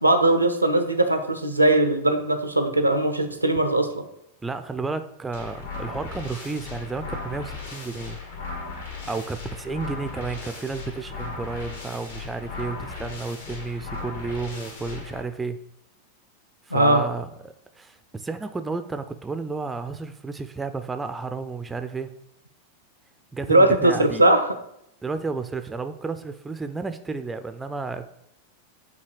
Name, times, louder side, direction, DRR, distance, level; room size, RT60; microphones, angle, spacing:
voice 1, 0.0-4.0 16.7-17.0 23.5-24.5, right 1 dB, 85° right, 8 dB, 0.6 m, -20 dB
voice 2, 4.4-8.2 9.1-15.6 16.7-22.1 23.3-24.2 25.0-28.1, right 4 dB, 10° right, 9 dB, 0.4 m, -32 dB
sound 1, 5.3-15.2, left 4 dB, 65° left, 1.3 m, -37 dB
7.8 x 2.8 x 4.6 m, 0.80 s
figure-of-eight pair, 90°, 0 cm